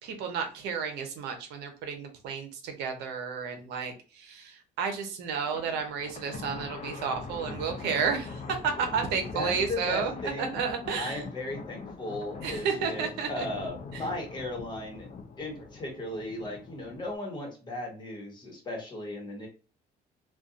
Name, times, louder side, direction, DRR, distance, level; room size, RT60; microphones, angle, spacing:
voice 1, 0.0-11.2 12.4-13.5 13.9-14.0, right 6 dB, 85° right, 6 dB, 0.7 m, -32 dB
Thunder, 5.4-17.2, left 4 dB, 40° left, 0.5 m, -42 dB
voice 2, 9.3-10.6 11.0-15.1 15.4-19.5, left 1 dB, 25° left, 0 dB, 1.0 m, -36 dB
2.5 x 2.3 x 2.4 m, 0.36 s
cardioid pair, 110°, 17 cm